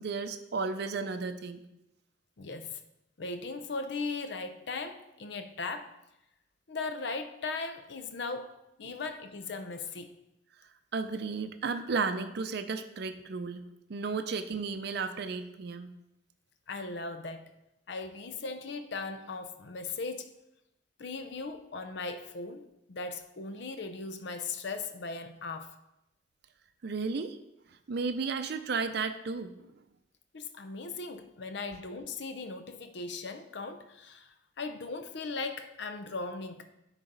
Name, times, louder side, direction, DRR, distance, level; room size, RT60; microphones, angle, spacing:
voice 1, 0.0-1.6 10.9-15.9 26.8-27.4 27.9-29.5, right 4 dB, 60° right, 8 dB, 0.5 m, -33 dB
voice 2, 2.4-2.8 3.2-5.9 6.7-8.5 8.8-10.2 16.7-17.5 17.9-20.3 21.0-25.8 30.3-36.7, left 3 dB, 65° left, 8 dB, 0.6 m, -38 dB
10.0 x 4.0 x 3.9 m, 0.87 s
head